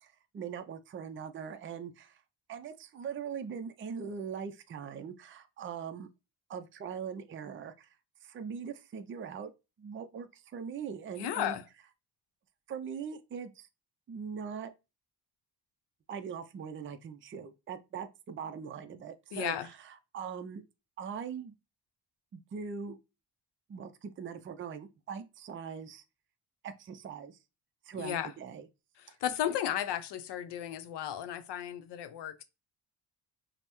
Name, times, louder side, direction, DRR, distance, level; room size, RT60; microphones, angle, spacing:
voice 1, 0.0-2.1 2.5-6.1 6.5-7.9 8.2-9.5 9.8-11.6 12.7-13.7 14.1-14.7 16.1-19.6 19.8-20.6 21.0-21.5 22.3-23.0 23.7-26.0 26.6-27.4 27.9-28.7, right 7 dB, 30° right, 0.4 m, -41 dB
voice 2, 11.1-11.6 19.3-19.7 27.9-28.3 29.0-32.4, left 10 dB, 80° left, 0.7 m, -34 dB
5.3 x 2.1 x 2.9 m
cardioid pair, 120°, 40 cm